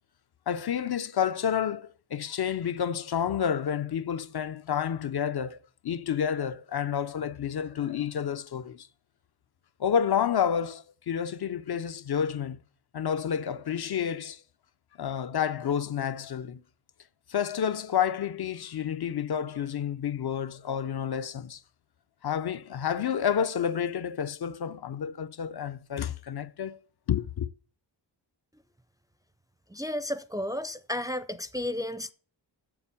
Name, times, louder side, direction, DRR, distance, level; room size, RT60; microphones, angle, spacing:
voice 1, 0.5-5.6 5.8-8.9 9.8-12.6 12.9-14.4 15.0-16.6 17.3-21.6 22.2-26.8 27.1-27.5, left 8 dB, 55° left, 0.6 m, -29 dB
voice 2, 29.7-32.1, left 1 dB, 10° right, 0.4 m, -33 dB
7.6 x 7.0 x 7.0 m
wide cardioid pair, 130°, 45 cm